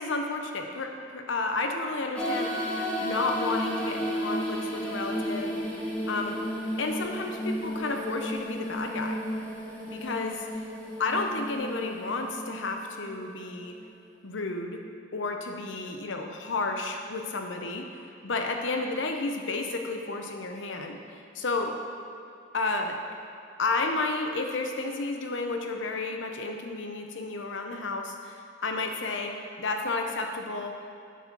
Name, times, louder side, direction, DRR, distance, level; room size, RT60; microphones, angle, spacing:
voice 1, 0.0-2.7 3.0-5.8 6.1-6.4 6.8-9.2 9.9-10.6 11.0-13.8 14.2-14.8 15.1-17.9 18.2-21.0 21.3-21.8 22.5-23.0 23.6-30.8, left 3 dB, 75° left, 4 dB, 0.7 m, -31 dB
sound 1, 2.2-14.0, equal, 5° left, 0.9 m, -33 dB
8.3 x 4.2 x 5.9 m, 2.6 s
head